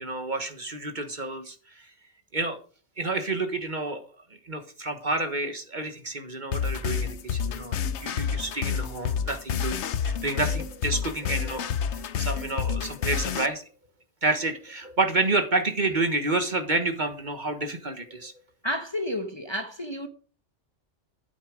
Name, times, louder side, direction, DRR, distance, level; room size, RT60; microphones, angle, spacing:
voice 1, 0.0-1.9 2.3-2.6 3.0-4.1 4.4-13.6 14.2-18.3, right 2 dB, 40° right, 1.5 m, -29 dB
sound 1, 6.5-13.5, left 7 dB, 70° left, 1.0 m, -29 dB
voice 2, 18.6-20.1, left 1 dB, 25° left, 1.1 m, -31 dB
13.0 x 8.2 x 5.1 m
omnidirectional pair, 1.3 m